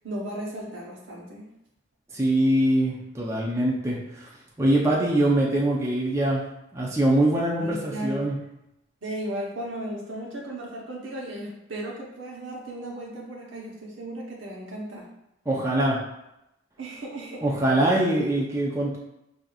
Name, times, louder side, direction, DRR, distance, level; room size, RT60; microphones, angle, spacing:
voice 1, 0.0-1.5 7.6-8.2 9.0-15.1 16.8-17.5, right 1 dB, 75° right, -2 dB, 1.1 m, -35 dB
voice 2, 2.1-4.3 4.6-6.4 6.7-8.4 15.5-16.0 17.4-19.0, right 1 dB, 15° right, -4 dB, 0.6 m, -23 dB
6.3 x 2.7 x 2.4 m, 0.88 s
head